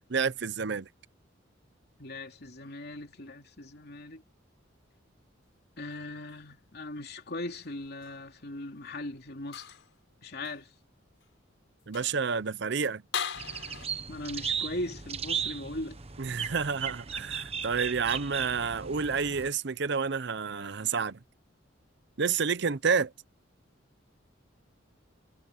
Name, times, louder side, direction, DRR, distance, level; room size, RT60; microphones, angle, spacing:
voice 1, 0.1-0.9 11.9-13.0 16.2-21.2 22.2-23.1, right 5 dB, 65° right, 0.7 m, -29 dB
voice 2, 2.0-4.2 5.8-9.7 10.2-10.7 14.1-16.0, left 1 dB, 55° left, 3.1 m, -39 dB
sound 1, 7.4-8.3 9.5-10.0 10.4-10.6 11.2-11.3 11.8-12.3 13.1-13.9, left 7 dB, 75° left, 5.5 m, -39 dB
sound 2, 13.4-19.5, right 7 dB, 30° right, 1.1 m, -36 dB
head